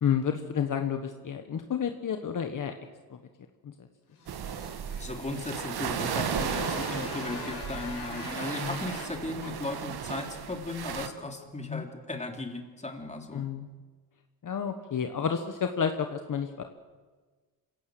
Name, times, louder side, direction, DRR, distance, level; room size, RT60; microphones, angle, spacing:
voice 1, 0.0-2.7 3.1-3.2 3.6-3.7 8.6-8.8 11.7-11.8 13.3-13.7 14.4-16.6, left 7 dB, 55° left, 6 dB, 1.3 m, -30 dB
Motorcycle, 4.2-10.5, left 3 dB, 70° left, 7.3 m, -41 dB
sound 1, 4.3-11.1, right 8 dB, 75° right, 1.5 m, -35 dB
voice 2, 5.0-13.4, left 2 dB, 20° left, 3 dB, 3.1 m, -37 dB
26.5 x 17.0 x 7.8 m, 1.4 s
cardioid pair, 110°, 38 cm